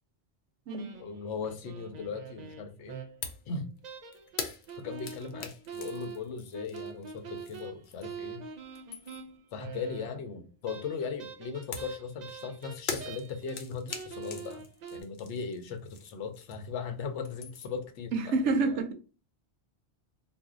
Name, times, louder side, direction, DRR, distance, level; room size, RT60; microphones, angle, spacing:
sound 1, 0.7-3.4 3.8-10.3 10.7-13.6 13.9-15.0, right 6 dB, 55° right, 0.5 m, -44 dB
voice 1, 1.0-3.0 3.5-3.7 4.8-8.4 9.5-14.6 14.9-18.8, left 5 dB, 90° left, 0.9 m, -38 dB
sound 2, 3.2-3.5 3.8-8.3 8.6-9.4 11.7-16.8 17.1-17.9, left 5 dB, 60° left, 0.6 m, -42 dB
voice 2, 18.1-18.9, right 3 dB, 90° right, 0.9 m, -28 dB
2.5 x 2.1 x 3.6 m
omnidirectional pair, 1.1 m